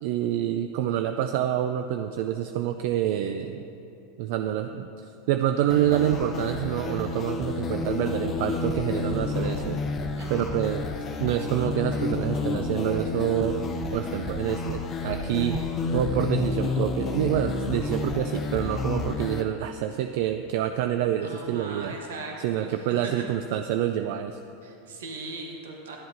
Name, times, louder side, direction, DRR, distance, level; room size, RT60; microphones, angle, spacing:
voice 1, 0.0-3.6 4.2-4.9 5.3-9.8 10.3-10.9 11.2-13.7 13.9-15.6 15.9-22.0 22.4-24.4, right 11 dB, 65° right, 7 dB, 0.3 m, -27 dB
sound 1, 5.7-19.4, left 3 dB, 30° left, 0.7 m, -30 dB
voice 2, 10.2-10.6 21.2-23.2 24.6-26.0, right 3 dB, 85° right, 1 dB, 1.1 m, -39 dB
12.5 x 7.6 x 2.7 m, 2.9 s
hypercardioid pair, 115°, 0 cm